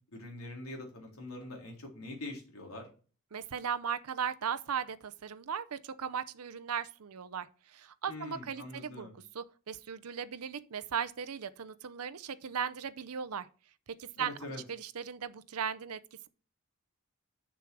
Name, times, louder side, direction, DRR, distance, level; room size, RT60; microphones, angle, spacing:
voice 1, 0.1-2.9 8.1-9.2 14.2-14.6, left 2 dB, 70° left, 3.8 m, -44 dB
voice 2, 3.3-9.1 9.3-13.5 13.9-14.3 14.7-16.0, right 7 dB, 85° right, 0.6 m, -37 dB
7.4 x 6.9 x 4.7 m
head